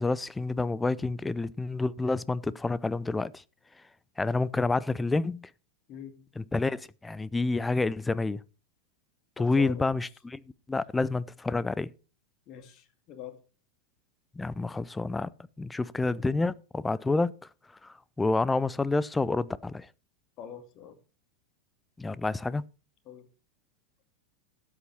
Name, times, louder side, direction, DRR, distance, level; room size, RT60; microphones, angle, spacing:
voice 1, 0.0-3.3 4.2-5.5 6.4-8.4 9.4-10.4 10.7-11.9 14.4-15.3 15.6-17.3 17.8-19.9 22.0-22.6, left 3 dB, 10° left, 0.5 m, -28 dB
voice 2, 5.9-6.2 9.4-10.0 12.5-13.4 20.4-21.0 23.1-23.3, left 10 dB, 35° left, 2.2 m, -44 dB
12.5 x 8.2 x 4.7 m
figure-of-eight pair, 90°, 0 cm